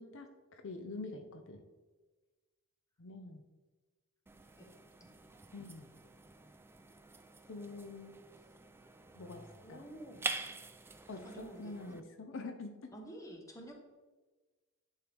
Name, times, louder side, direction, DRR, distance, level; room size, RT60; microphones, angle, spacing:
voice 1, 0.0-1.6 3.0-3.4 5.5-5.9 7.5-8.1 9.1-9.4 9.7-9.8 11.1-12.9, left 3 dB, 60° left, 6 dB, 0.6 m, -46 dB
sound 1, 4.3-12.0, right 3 dB, 10° right, 0.4 m, -46 dB
voice 2, 9.6-10.3 11.2-12.0 12.9-13.7, right 1 dB, 15° left, 1 dB, 1.1 m, -50 dB
10.5 x 4.5 x 3.4 m, 1.3 s
head